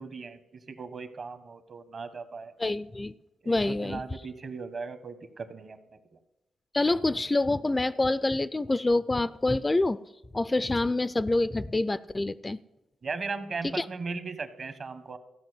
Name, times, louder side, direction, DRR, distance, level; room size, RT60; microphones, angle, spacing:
voice 1, 0.0-2.5 3.4-5.8 6.1-6.2 13.0-15.2, right 4 dB, 50° right, 11 dB, 1.4 m, -38 dB
voice 2, 2.6-3.1 3.5-4.0 6.7-10.0 10.3-12.6 13.7-13.9, left 2 dB, 20° left, 16 dB, 0.5 m, -26 dB
14.5 x 5.9 x 9.6 m, 0.94 s
cardioid pair, 65°, 0 cm